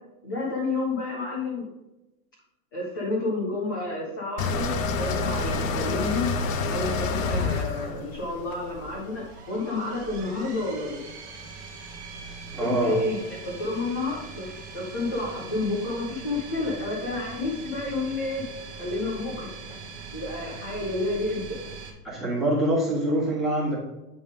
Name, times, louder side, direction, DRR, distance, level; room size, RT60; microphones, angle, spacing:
voice 1, 0.2-1.7 2.7-6.3 6.7-11.0 12.6-14.5 14.7-18.4 18.7-19.5 20.1-21.6, left 2 dB, 15° left, -5 dB, 0.3 m, -30 dB
sound 1, 4.4-9.3, left 3 dB, 60° left, 0.8 m, -28 dB
sound 2, 5.3-21.9, right 5 dB, 20° right, 1.0 m, -42 dB
voice 2, 12.5-13.0 22.0-23.8, right 1 dB, ahead, -8 dB, 1.6 m, -25 dB
8.0 x 3.5 x 4.9 m, 0.99 s
supercardioid pair, 170°, 44 cm